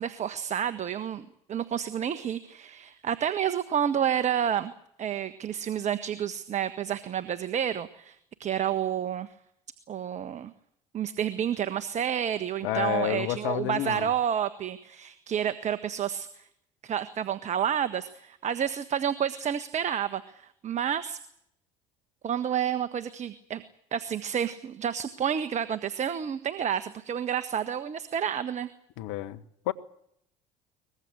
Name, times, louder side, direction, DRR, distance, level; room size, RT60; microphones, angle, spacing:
voice 1, 0.0-4.7 5.0-9.3 9.9-10.5 10.9-16.4 16.8-21.2 22.2-23.6 23.9-28.7, right 9 dB, 40° right, 1.5 m, -30 dB
voice 2, 12.6-14.1 29.0-29.7, left 14 dB, 75° left, 1.5 m, -30 dB
23.5 x 21.0 x 8.0 m
hypercardioid pair, 70°, 17 cm